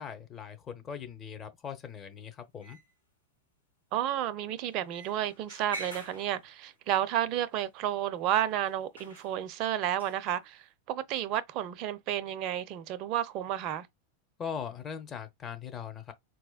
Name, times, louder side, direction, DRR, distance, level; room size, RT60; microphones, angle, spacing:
voice 1, 0.0-2.8 14.4-16.1, left 7 dB, 25° left, 0.7 m, -40 dB
sound 1, 2.6-2.9 4.7-6.7 7.4-7.5 8.6-8.7 9.0-9.3 10.0-10.2, right 2 dB, 85° left, 1.4 m, -45 dB
voice 2, 3.9-13.9, right 11 dB, 40° right, 0.4 m, -31 dB
4.2 x 2.2 x 2.3 m
figure-of-eight pair, 90°, 0 cm